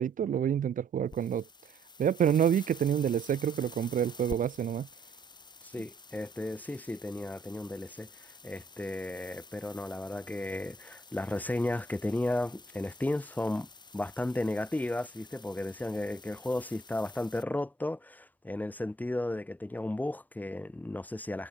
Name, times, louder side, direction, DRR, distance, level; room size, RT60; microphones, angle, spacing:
voice 1, 0.0-1.4 2.0-4.9, right 9 dB, 55° right, 1.1 m, -28 dB
sound 1, 1.0-17.4, left 4 dB, 25° left, 4.3 m, -51 dB
voice 2, 5.6-13.7 13.9-21.5, left 1 dB, 10° left, 1.2 m, -34 dB
cardioid pair, 130°, 16 cm